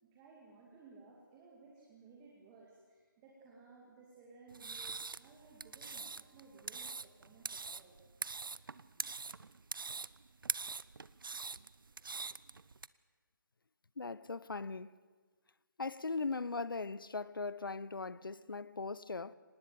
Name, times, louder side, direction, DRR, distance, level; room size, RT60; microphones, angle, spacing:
voice 1, 0.0-8.0, right 4 dB, 15° right, 2.4 m, -59 dB
sound 1, 4.5-12.9, right 4 dB, 80° right, 0.7 m, -43 dB
voice 2, 14.0-15.0 15.8-19.3, left 4 dB, 90° left, 0.8 m, -39 dB
24.5 x 19.5 x 7.5 m
figure-of-eight pair, 165°, 11 cm